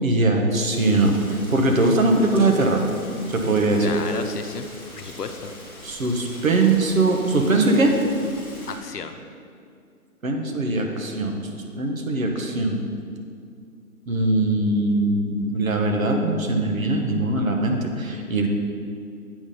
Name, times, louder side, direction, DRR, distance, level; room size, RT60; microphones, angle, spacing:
voice 1, 0.0-2.8 3.3-3.9 5.8-7.9 10.2-11.4 11.8-12.8 14.1-18.5, right 2 dB, 65° right, 2 dB, 1.3 m, -21 dB
Rain, 0.7-8.7, left 1 dB, 5° left, 0.6 m, -42 dB
voice 2, 3.8-4.7 5.0-5.5 8.7-9.2, left 5 dB, 90° left, 7 dB, 0.8 m, -33 dB
8.5 x 4.2 x 5.4 m, 2.3 s
figure-of-eight pair, 150°, 45 cm